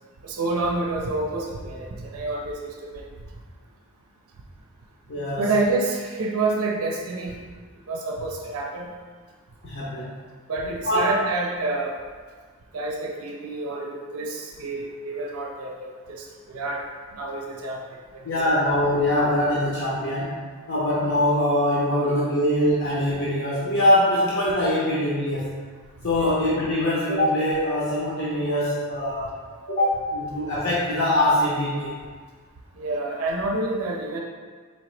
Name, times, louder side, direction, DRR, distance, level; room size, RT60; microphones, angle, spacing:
voice 1, 0.2-3.0 5.4-7.4 7.9-8.9 10.5-12.0 12.7-16.8 17.1-18.0 22.1-22.2 26.1-26.4 32.8-34.2, right 2 dB, 80° right, -1 dB, 0.5 m, -28 dB
voice 2, 5.1-5.5 9.6-10.1 10.8-11.2 18.2-20.4 20.7-25.6 26.0-29.4 29.7-32.0, left 1 dB, 55° left, -8 dB, 0.7 m, -23 dB
4.2 x 2.9 x 3.1 m, 1.5 s
head